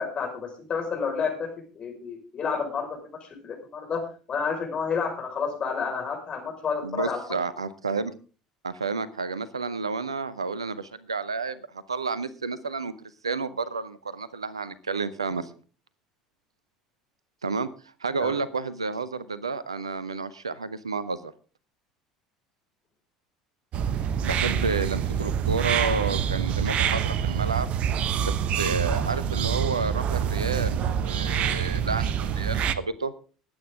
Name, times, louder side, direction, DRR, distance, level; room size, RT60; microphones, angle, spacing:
voice 1, 0.0-1.5 1.7-7.2 18.2-18.4, left 5 dB, 35° left, 3 dB, 5.4 m, -30 dB
voice 2, 6.8-8.1 8.6-12.9 13.2-15.5 17.4-17.7 18.0-21.3 24.2-27.7 28.2-33.1, right 4 dB, 80° right, 16 dB, 0.8 m, -30 dB
sound 1, 23.7-32.7, right 8 dB, 45° right, 1.0 m, -26 dB
20.5 x 8.9 x 3.7 m, 0.37 s
figure-of-eight pair, 65°, 3 cm